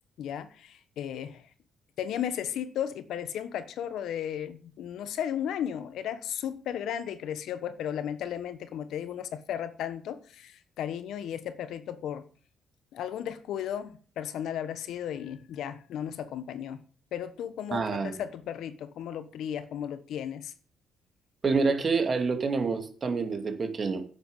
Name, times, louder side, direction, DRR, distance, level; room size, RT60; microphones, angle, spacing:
voice 1, 0.2-1.4 2.0-12.3 12.9-16.8 17.1-20.5, left 9 dB, 80° left, 1.1 m, -35 dB
voice 2, 17.7-18.2 21.4-24.0, right 4 dB, 40° right, 2.6 m, -27 dB
11.0 x 7.8 x 7.3 m
cardioid pair, 90°, 0 cm